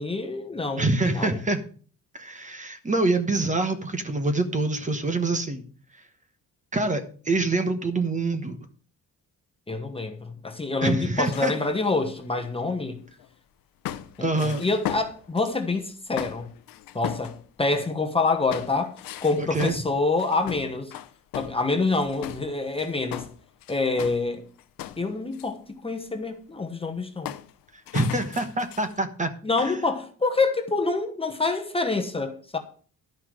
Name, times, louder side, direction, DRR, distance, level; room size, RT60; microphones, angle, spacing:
voice 1, 0.0-1.4 9.7-13.0 14.2-16.5 16.9-18.9 19.2-20.9 21.3-23.3 23.7-24.4 25.0-27.3 29.4-32.6, left 3 dB, 15° left, 1.2 m, -26 dB
voice 2, 0.8-1.6 2.1-5.6 6.7-8.6 10.8-11.5 14.2-14.6 19.4-19.7 27.9-29.3 29.6-29.8, right 2 dB, 20° right, 1.2 m, -25 dB
sound 1, 11.3-13.3 13.8-15.6 16.2-18.0 18.5-24.3 24.6-25.5 27.2-27.5 27.9-29.0, left 12 dB, 80° left, 0.8 m, -38 dB
12.0 x 5.7 x 6.3 m
cardioid pair, 125°, 33 cm